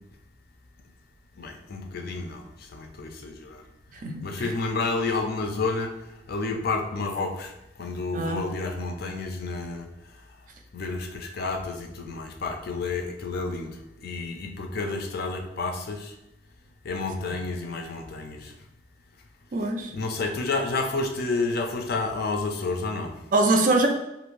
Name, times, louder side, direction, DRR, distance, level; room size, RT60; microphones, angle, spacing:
voice 1, 1.4-3.6 4.2-5.9 6.3-7.5 7.8-9.9 10.7-16.1 16.8-18.5 19.9-23.1, left 3 dB, 55° left, 3 dB, 0.4 m, -30 dB
voice 2, 4.0-4.5 8.1-8.4 19.5-19.9 23.3-23.9, right 2 dB, 45° right, 3 dB, 0.4 m, -23 dB
2.6 x 2.5 x 3.1 m, 0.91 s
head